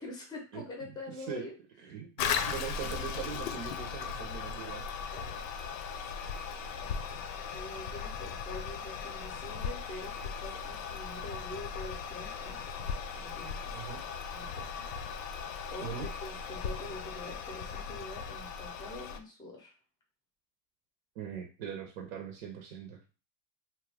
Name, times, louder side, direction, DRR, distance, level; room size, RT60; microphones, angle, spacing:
voice 1, 0.0-1.5 1.9-2.0 5.1-5.5 6.7-6.9 7.5-12.6 13.2-13.9 14.3-14.7 15.7-15.9 16.2-19.7, left 2 dB, 10° left, 0 dB, 0.6 m, -45 dB
voice 2, 0.5-0.9 1.2-1.4 1.8-4.9 13.7-14.0 15.8-16.1 21.2-23.0, right 8 dB, 60° right, 1 dB, 0.8 m, -41 dB
Toilet flush, 2.2-19.2, left 6 dB, 70° left, 0.6 m, -38 dB
2.8 x 2.3 x 3.3 m, 0.35 s
supercardioid pair, 160°, 42 cm